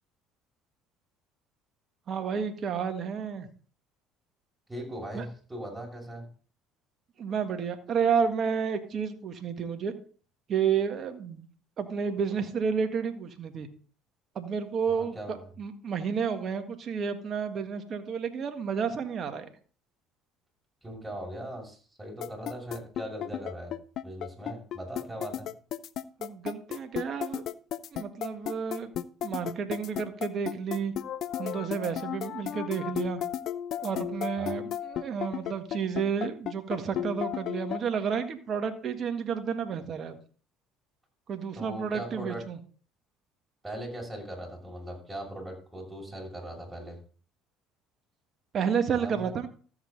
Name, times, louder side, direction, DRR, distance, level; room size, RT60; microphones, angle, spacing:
voice 1, 2.1-3.5 5.1-5.2 7.2-9.9 10.5-11.5 11.8-13.7 14.3-19.5 26.2-27.4 27.9-28.9 29.2-30.9 31.4-33.2 33.8-40.2 41.3-42.6 48.5-49.5, right 6 dB, 50° right, 7 dB, 1.7 m, -31 dB
voice 2, 4.7-6.2 14.9-15.4 20.8-23.7 24.0-25.5 34.4-34.6 41.5-42.4 43.6-47.0 48.9-49.3, right 1 dB, 10° right, -1 dB, 6.4 m, -39 dB
sound 1, 22.2-37.8, left 11 dB, 60° left, 0.6 m, -34 dB
13.5 x 8.1 x 4.0 m, 0.41 s
supercardioid pair, 75°, 0 cm